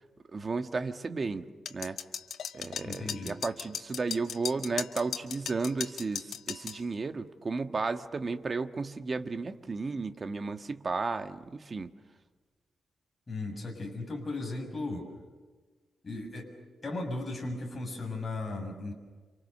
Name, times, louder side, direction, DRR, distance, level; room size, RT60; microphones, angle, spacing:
voice 1, 0.3-2.0 2.5-11.9, right 4 dB, 30° right, 8 dB, 1.5 m, -33 dB
sound 1, 1.7-6.8, left 8 dB, 80° left, 2.0 m, -37 dB
voice 2, 2.8-3.4 13.3-15.1 16.0-16.5 16.8-18.9, left 2 dB, 25° left, 1 dB, 6.8 m, -36 dB
29.5 x 27.5 x 6.7 m, 1.4 s
wide cardioid pair, 130°, 0 cm